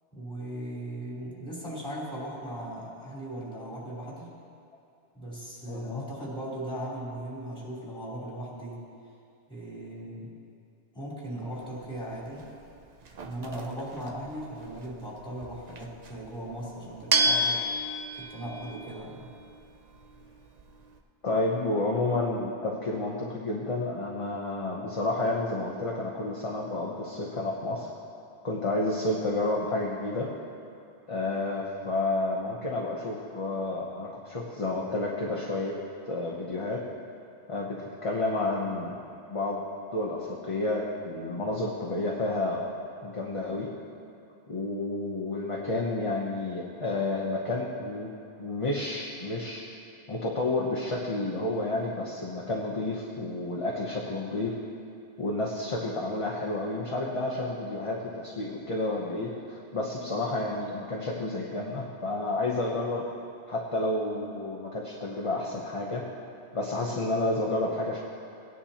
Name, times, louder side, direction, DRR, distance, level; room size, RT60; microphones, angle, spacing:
voice 1, 0.1-4.3 5.1-8.8 9.5-10.3 10.9-12.5 13.2-17.6 18.2-19.3, right 1 dB, 5° left, -7 dB, 3.2 m, -38 dB
voice 2, 5.7-6.0 21.2-27.9 28.4-30.3 31.1-35.8 36.0-36.9 37.5-39.0 39.3-39.7 39.9-42.7 43.0-43.7 44.5-48.1 48.4-49.7 50.1-54.6 55.2-63.1 63.5-66.1 66.5-68.0, left 2 dB, 30° left, -3 dB, 0.9 m, -30 dB
sound 1, 11.5-21.0, right 1 dB, 45° right, 0.6 m, -33 dB
18.0 x 10.0 x 2.9 m, 2.6 s
omnidirectional pair, 1.1 m